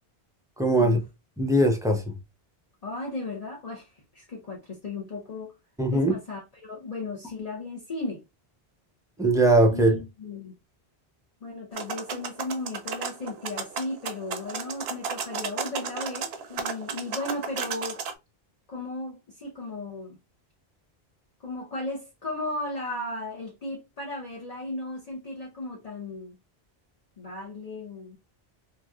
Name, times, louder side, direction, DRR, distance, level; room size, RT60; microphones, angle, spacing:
voice 1, 0.6-1.0 1.4-2.1 5.8-6.1 9.2-9.9, right 1 dB, 5° right, 0.4 m, -20 dB
voice 2, 2.8-5.5 5.9-8.2 9.7-10.5 11.4-18.0 18.7-20.2 21.4-26.4 27.2-28.2, left 2 dB, 40° left, 0.8 m, -35 dB
sound 1, 11.7-18.1, right 6 dB, 80° right, 0.8 m, -34 dB
3.0 x 2.7 x 2.3 m
omnidirectional pair, 1.1 m